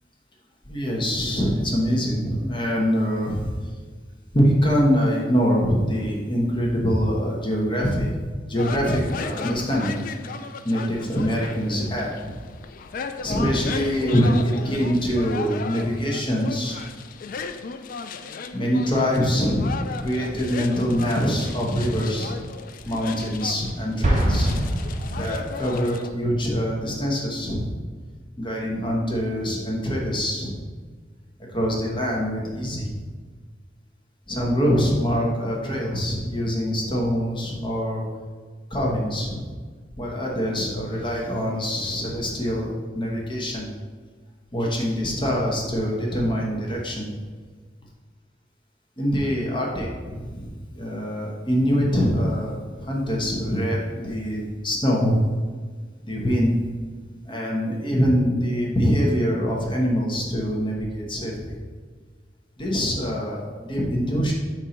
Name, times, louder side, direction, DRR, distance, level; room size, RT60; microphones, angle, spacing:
voice 1, 0.7-3.5 4.3-8.2 8.5-10.1 10.6-12.4 13.2-16.8 18.5-19.7 20.0-22.4 22.8-24.6 25.2-27.7 28.4-30.5 31.5-33.0 34.3-38.1 38.7-39.4 40.0-43.7 44.5-47.1 49.0-52.5 52.8-55.2 56.0-56.7 57.2-61.5 62.6-64.3, equal, 30° left, -2 dB, 1.0 m, -24 dB
sound 1, 8.6-26.1, left 5 dB, 50° left, 0.3 m, -36 dB
Explosion, 24.0-25.9, right 1 dB, 40° right, 0.9 m, -23 dB
4.5 x 4.3 x 5.1 m, 1.5 s
head